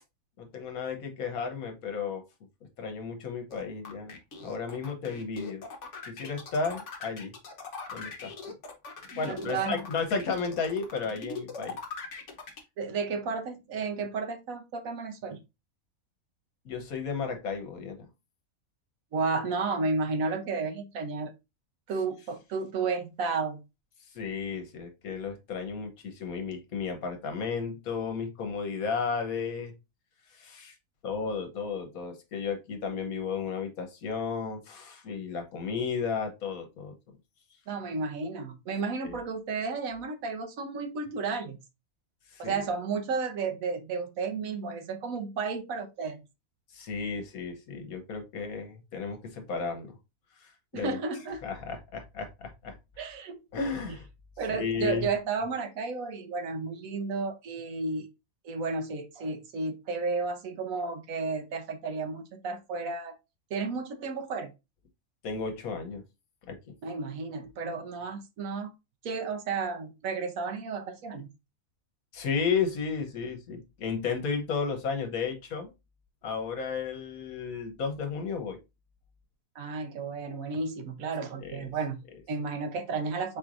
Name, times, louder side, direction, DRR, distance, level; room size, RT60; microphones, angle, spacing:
voice 1, 0.4-2.2 2.8-5.6 6.1-7.3 7.9-8.5 9.2-11.8 16.6-18.0 24.1-29.7 30.3-30.7 31.0-37.2 39.0-39.2 42.3-42.6 46.7-50.0 50.4-51.0 51.4-52.8 53.5-54.1 54.5-55.1 65.2-66.0 66.5-66.6 72.1-75.7 76.2-78.6 81.4-81.7, left 5 dB, 70° left, 5 dB, 1.4 m, -33 dB
sound 1, 3.5-12.6, left 4 dB, 55° left, 1.2 m, -41 dB
voice 2, 9.3-9.8 12.8-15.4 19.1-21.3 21.9-23.6 37.7-41.6 42.4-46.2 50.7-51.5 53.0-53.4 54.4-58.1 58.4-63.1 63.5-64.5 66.8-68.7 69.0-71.3 79.6-83.4, right 4 dB, 70° right, 7 dB, 1.1 m, -32 dB
4.5 x 4.3 x 2.5 m, 0.24 s
omnidirectional pair, 1.6 m